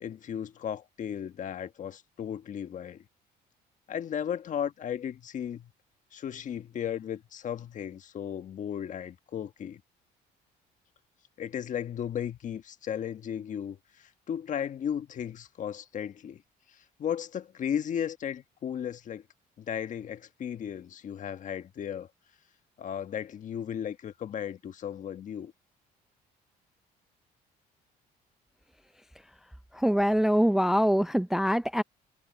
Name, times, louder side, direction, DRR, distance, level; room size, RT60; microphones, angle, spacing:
voice 1, 0.0-3.0 3.9-5.7 6.1-9.8 11.4-16.4 17.0-19.2 19.6-22.1 22.8-25.5, left 9 dB, 50° left, 1.4 m, -35 dB
voice 2, 29.7-31.8, equal, ahead, 0.4 m, -24 dB
cardioid pair, 110°, 17 cm